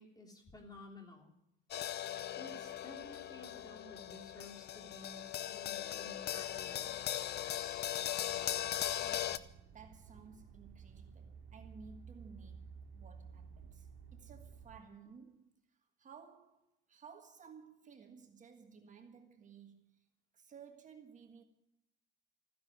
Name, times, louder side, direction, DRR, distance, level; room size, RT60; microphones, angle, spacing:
voice 1, 0.0-1.3 2.4-7.3, left 2 dB, 20° left, 3.2 m, -54 dB
sound 1, 1.7-9.4, left 12 dB, 55° left, 0.8 m, -39 dB
sound 2, 8.3-14.8, right 6 dB, 70° right, 2.7 m, -54 dB
voice 2, 9.0-9.5 9.7-20.0 20.3-21.4, right 5 dB, 40° right, 1.6 m, -57 dB
14.5 x 10.5 x 9.3 m
cardioid pair, 140°, 21 cm